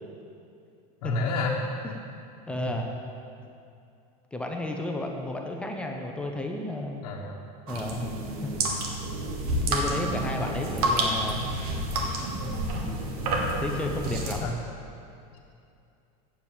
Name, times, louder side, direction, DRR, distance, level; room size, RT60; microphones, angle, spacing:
voice 1, 1.0-1.6 7.0-7.4 14.4-14.5, left 3 dB, 70° left, -3 dB, 1.2 m, -29 dB
voice 2, 2.5-2.9 4.3-7.0 7.7-8.1 8.4-8.5 9.6-11.6 12.4-13.0 13.6-14.5, left 2 dB, 5° left, 1 dB, 0.7 m, -33 dB
sound 1, 7.7-14.4, right 1 dB, 75° right, 1.6 m, -29 dB
8.4 x 7.5 x 7.2 m, 2.5 s
supercardioid pair, 160°, 19 cm